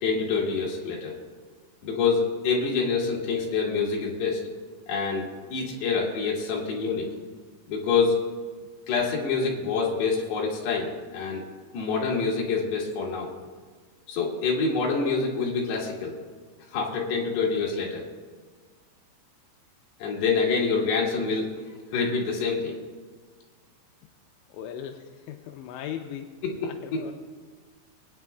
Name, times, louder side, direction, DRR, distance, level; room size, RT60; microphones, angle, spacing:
voice 1, 0.0-1.2 1.8-4.4 4.9-5.2 5.5-7.1 7.7-8.2 8.9-11.4 11.7-13.3 14.1-16.1 16.7-18.1 20.0-21.5 21.9-22.8 26.6-27.0, left 5 dB, 65° left, -3 dB, 3.7 m, -26 dB
voice 2, 24.5-26.3 26.6-27.1, left 9 dB, 80° left, 4 dB, 2.7 m, -38 dB
22.5 x 8.9 x 2.3 m, 1.5 s
omnidirectional pair, 5.4 m